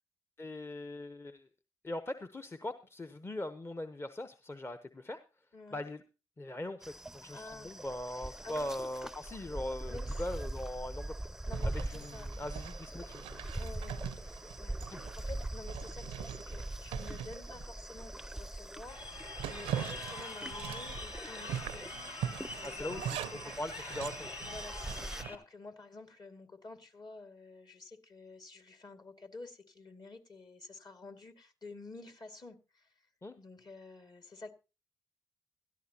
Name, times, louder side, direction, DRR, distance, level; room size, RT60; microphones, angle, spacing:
voice 1, 0.4-1.5 1.8-5.2 5.7-6.0 6.4-11.1 11.7-13.2 14.9-15.0 22.6-24.3 33.2-33.3, left 1 dB, 25° left, 10 dB, 0.8 m, -41 dB
sound 1, 6.8-25.2, right 1 dB, 5° right, 0.5 m, -42 dB
voice 2, 7.3-7.7 8.1-8.7 9.9-10.3 11.5-12.3 13.6-22.0 22.6-23.3 24.4-32.9 33.4-34.5, left 3 dB, 45° left, 7 dB, 2.1 m, -50 dB
Zipper (clothing), 11.5-18.1 18.5-18.6 19.0-25.3, right 10 dB, 85° right, 0.5 m, -43 dB
Crowd, 18.9-25.3, left 3 dB, 70° left, 2.1 m, -45 dB
16.5 x 13.0 x 2.8 m, 0.30 s
hypercardioid pair, 40°, 10 cm